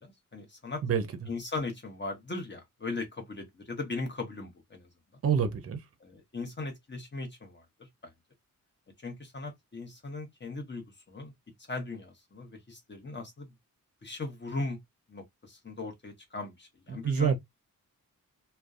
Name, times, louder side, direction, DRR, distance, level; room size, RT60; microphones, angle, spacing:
voice 1, 0.0-0.8 1.3-4.9 6.0-7.6 8.0-8.1 9.0-11.3 11.7-13.5 14.0-14.8 15.1-17.4, left 3 dB, 35° left, 0.8 m, -38 dB
voice 2, 0.8-1.3 5.2-5.8 16.9-17.4, right 7 dB, 45° right, 0.5 m, -27 dB
2.5 x 2.1 x 2.4 m
wide cardioid pair, 100°, 34 cm